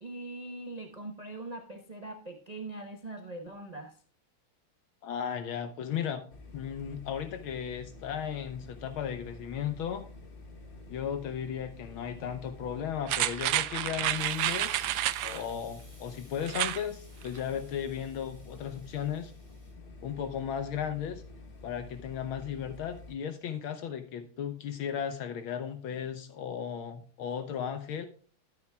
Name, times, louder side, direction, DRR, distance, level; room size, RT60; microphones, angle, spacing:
voice 1, 0.0-4.0, right 2 dB, 55° right, 4 dB, 0.4 m, -42 dB
voice 2, 5.0-6.2 6.5-10.0 10.9-19.3 20.0-21.2 21.6-28.1, left 8 dB, 75° left, 9 dB, 1.6 m, -35 dB
sound 1, 6.3-23.2, left 3 dB, 40° left, 0.8 m, -49 dB
sound 2, 13.1-15.4 16.4-16.8 17.2-17.3, right 13 dB, 90° right, 1.6 m, -30 dB
Explosion, 13.9-19.7, left 1 dB, 15° left, 2.7 m, -57 dB
12.5 x 9.3 x 2.2 m, 0.43 s
omnidirectional pair, 2.4 m